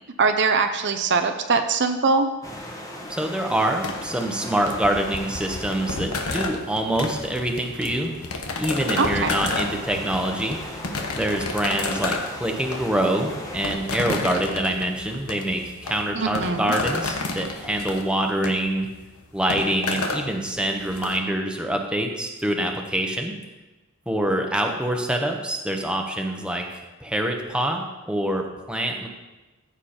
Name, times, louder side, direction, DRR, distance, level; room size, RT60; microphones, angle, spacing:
voice 1, 0.2-2.3 9.0-9.4 16.1-16.7, right 4 dB, 55° right, 6 dB, 0.8 m, -22 dB
sound 1, 2.4-13.8, left 1 dB, 15° left, 1.4 m, -38 dB
voice 2, 3.1-8.1 8.6-10.6 11.1-18.9 19.3-23.4 24.1-26.6 27.0-29.1, right 1 dB, 5° right, 2 dB, 1.2 m, -25 dB
sound 2, 3.8-21.2, left 3 dB, 90° left, 1.3 m, -32 dB
14.5 x 7.4 x 4.4 m, 1.1 s
head